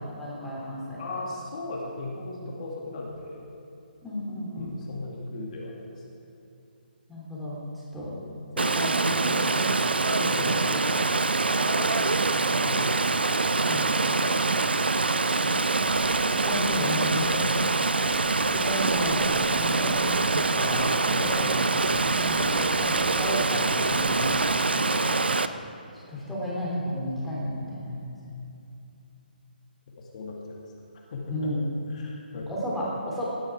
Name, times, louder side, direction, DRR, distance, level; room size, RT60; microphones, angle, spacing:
voice 1, 0.1-1.0 4.0-4.8 7.1-8.1 8.6-9.6 10.2-10.6 12.3-12.9 13.6-13.9 16.4-17.4 18.5-21.5 21.7-24.4 25.9-28.4 31.3-31.6 32.5-33.3, equal, ahead, -8 dB, 3.3 m, -33 dB
voice 2, 1.0-3.5 4.5-6.0 7.9-8.4 10.3-10.7 11.6-12.4 12.6-16.1 17.3-17.7 21.3-21.6 22.5-22.8 24.9-25.2 30.0-30.6 30.9-31.5 31.9-32.5, left 2 dB, 45° left, -2 dB, 2.3 m, -38 dB
Stream, 8.6-25.5, right 3 dB, 75° right, 0.6 m, -24 dB
sound 1, 15.8-24.5, equal, 15° right, 2.5 m, -45 dB
17.5 x 10.5 x 4.8 m, 2.8 s
figure-of-eight pair, 145°, 6 cm